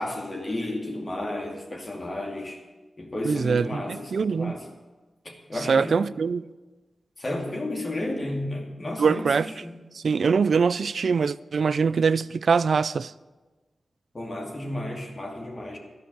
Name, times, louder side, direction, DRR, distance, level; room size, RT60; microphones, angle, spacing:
voice 1, 0.0-2.6 3.0-4.6 5.2-6.1 7.2-9.3 9.6-9.7 14.1-15.8, left 1 dB, 40° left, 2.5 m, -32 dB
voice 2, 3.2-4.6 5.7-6.4 9.0-9.5 9.9-13.1, right 5 dB, 75° right, 0.3 m, -23 dB
13.0 x 5.4 x 9.3 m
cardioid pair, 45°, 0 cm